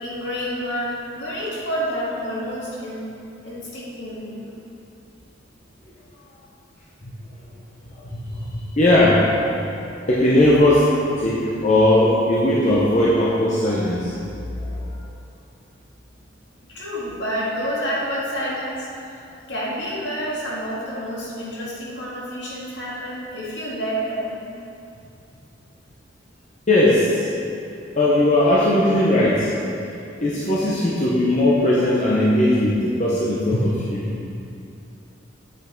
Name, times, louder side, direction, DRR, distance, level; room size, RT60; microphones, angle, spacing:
voice 1, 0.0-3.0 3.4-4.4 16.7-19.2 19.5-24.4, equal, 65° left, -6 dB, 2.0 m, -29 dB
voice 2, 8.1-9.3 10.1-14.1 14.6-14.9 26.7-27.3 28.0-29.5 30.2-34.1, left 1 dB, 40° left, -7 dB, 0.9 m, -18 dB
8.5 x 5.7 x 4.5 m, 2.6 s
head